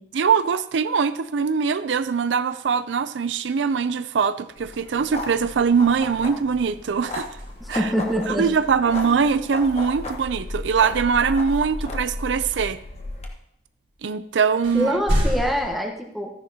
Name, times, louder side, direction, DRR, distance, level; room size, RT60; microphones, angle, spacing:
voice 1, 0.1-7.3 7.7-7.9 8.3-12.8 14.0-15.0, right 6 dB, 80° right, 13 dB, 0.5 m, -22 dB
sound 1, 4.6-13.3, left 2 dB, 35° left, 1.3 m, -34 dB
sound 2, 7.3-8.2 11.7-11.8 13.9-14.0 14.6-15.7, equal, 45° right, 3.1 m, -28 dB
voice 2, 7.6-8.5 8.9-9.0 14.7-16.3, equal, ahead, 1 dB, 1.2 m, -25 dB
14.0 x 10.0 x 2.9 m, 0.77 s
head